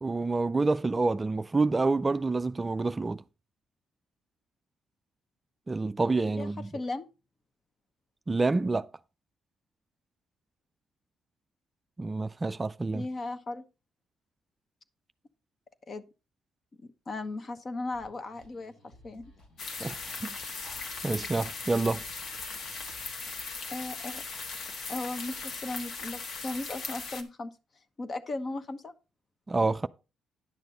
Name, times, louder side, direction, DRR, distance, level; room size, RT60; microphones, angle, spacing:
voice 1, 0.0-3.2 5.7-6.7 8.3-8.9 12.0-13.1 19.8-20.3 20.6-20.8 21.0-22.0 29.5-29.9, right 3 dB, 25° right, 0.4 m, -28 dB
voice 2, 6.4-7.1 12.9-13.6 15.9-16.0 17.1-18.7 19.0-19.3 23.7-24.2 24.9-27.5 28.0-28.9, left 2 dB, 40° left, 1.0 m, -36 dB
sound 1, 17.9-23.5, equal, 90° left, 3.9 m, -58 dB
sound 2, 19.6-27.2, left 4 dB, 65° left, 1.5 m, -38 dB
10.5 x 6.7 x 3.9 m
cardioid pair, 90°, 0 cm